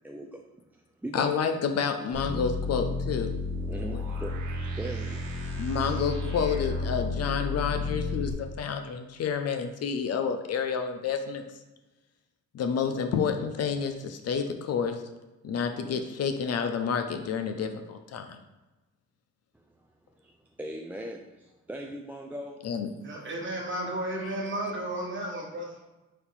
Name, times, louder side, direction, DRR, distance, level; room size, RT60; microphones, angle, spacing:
voice 1, 0.0-0.4 0.7-1.3 3.7-4.4 4.7-5.5 19.5-22.6, right 1 dB, 5° right, 1 dB, 0.3 m, -40 dB
voice 2, 1.1-3.3 5.6-11.4 12.5-15.0 15.4-18.4 22.6-22.9, left 6 dB, 55° left, 6 dB, 0.5 m, -29 dB
sound 1, 2.1-8.3, left 2 dB, 90° right, 1.0 m, -32 dB
voice 3, 23.0-25.8, right 1 dB, 40° right, -1 dB, 1.4 m, -33 dB
4.3 x 2.6 x 4.1 m, 1.1 s
cardioid pair, 90°, 30 cm